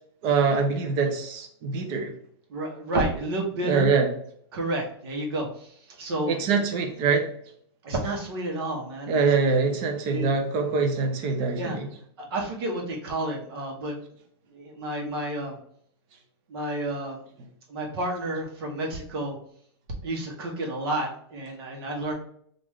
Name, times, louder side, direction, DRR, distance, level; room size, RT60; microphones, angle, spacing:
voice 1, 0.2-2.1 3.6-4.1 6.3-7.3 9.1-11.9, right 4 dB, 35° right, 4 dB, 0.6 m, -24 dB
voice 2, 2.5-3.9 4.5-6.6 7.8-9.2 10.1-10.4 11.5-11.8 12.2-13.9 14.5-15.6 16.5-17.2 17.7-19.4 20.0-22.1, right 1 dB, 60° right, 0 dB, 1.0 m, -30 dB
3.5 x 2.5 x 3.1 m, 0.65 s
supercardioid pair, 160°, 14 cm